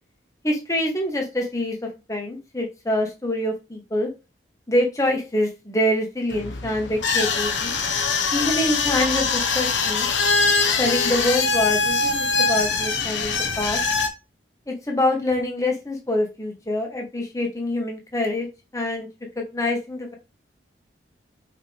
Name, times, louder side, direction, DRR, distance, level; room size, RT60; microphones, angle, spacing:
voice 1, 0.4-1.8 2.1-4.1 4.7-7.7 8.3-10.1 10.8-13.8 14.7-18.5 18.7-19.1 19.3-20.1, left 1 dB, 15° left, 1 dB, 1.5 m, -25 dB
sound 1, 6.3-14.1, left 4 dB, 85° left, 1.1 m, -23 dB
5.6 x 4.7 x 3.6 m, 0.28 s
head